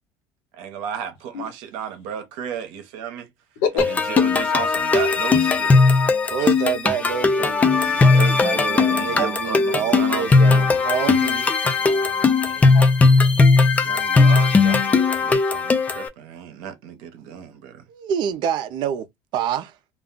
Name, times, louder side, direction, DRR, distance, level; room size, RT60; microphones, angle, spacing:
voice 1, 0.6-3.3 3.7-5.8 7.9-10.8 13.5-17.8, right 8 dB, 85° right, 0.8 m, -33 dB
sound 1, 3.8-16.1, left 4 dB, 15° left, 0.4 m, -18 dB
voice 2, 6.2-11.5 17.9-19.1 19.3-19.7, right 8 dB, 55° right, 0.5 m, -27 dB
voice 3, 11.8-13.4, left 7 dB, 90° left, 0.8 m, -29 dB
2.4 x 2.2 x 3.6 m
cardioid pair, 145°, 9 cm